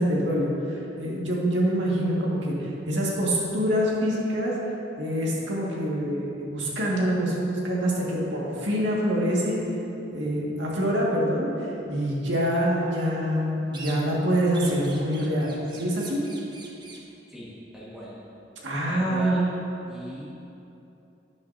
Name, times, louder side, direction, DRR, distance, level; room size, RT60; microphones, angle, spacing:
voice 1, 0.0-4.5 5.0-9.6 10.1-16.2 18.6-19.5, equal, 80° right, -4 dB, 1.9 m, -25 dB
sound 1, 13.7-14.3 14.5-17.1, right 3 dB, 25° right, 0.8 m, -44 dB
voice 2, 17.3-18.2 18.9-19.5 19.9-20.3, equal, 5° right, -9 dB, 1.7 m, -39 dB
11.5 x 9.4 x 2.7 m, 2.9 s
head